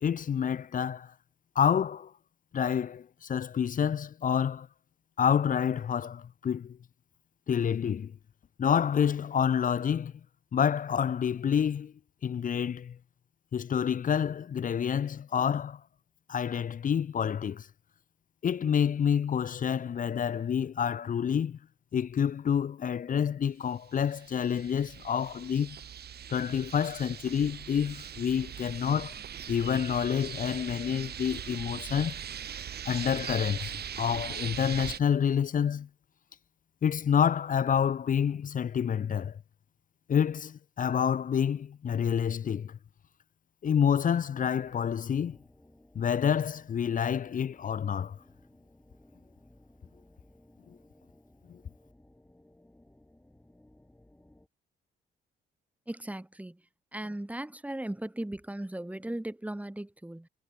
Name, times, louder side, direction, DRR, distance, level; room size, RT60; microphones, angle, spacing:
voice 1, 0.0-1.1 1.5-2.1 2.5-4.7 5.2-6.8 7.5-8.1 8.6-10.1 10.5-11.9 12.2-13.0 13.5-15.8 16.3-17.7 18.4-21.6 21.9-25.8 26.3-29.2 29.5-32.2 32.9-35.9 36.8-39.4 40.1-42.8 43.6-45.4 45.9-48.2 51.5-51.6, left 8 dB, 40° left, 0.7 m, -28 dB
sound 1, 24.0-35.0, right 9 dB, 55° right, 1.4 m, -40 dB
sound 2, 44.4-54.5, left 1 dB, 10° left, 5.8 m, -60 dB
voice 2, 55.9-56.6 56.9-60.3, right 1 dB, 5° right, 2.3 m, -37 dB
cardioid pair, 90°, 20 cm